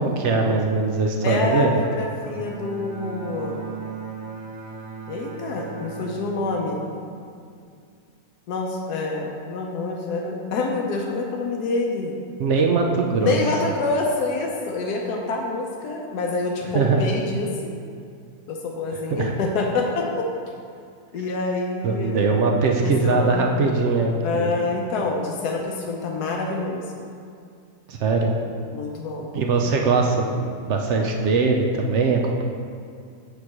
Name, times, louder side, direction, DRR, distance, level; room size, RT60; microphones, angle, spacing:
voice 1, 0.0-1.7 12.4-13.4 16.7-17.0 18.9-19.3 21.8-24.5 27.9-28.3 29.3-32.4, right 4 dB, 60° right, 1 dB, 0.8 m, -21 dB
voice 2, 1.2-3.6 5.1-6.8 8.5-12.1 13.2-17.7 18.5-20.3 21.1-22.3 22.8-23.4 24.2-26.9 28.7-29.3, left 3 dB, 85° left, 0 dB, 1.3 m, -27 dB
Bowed string instrument, 2.2-7.6, right 6 dB, 85° right, 1.9 m, -37 dB
8.7 x 3.2 x 5.9 m, 2.3 s
omnidirectional pair, 1.6 m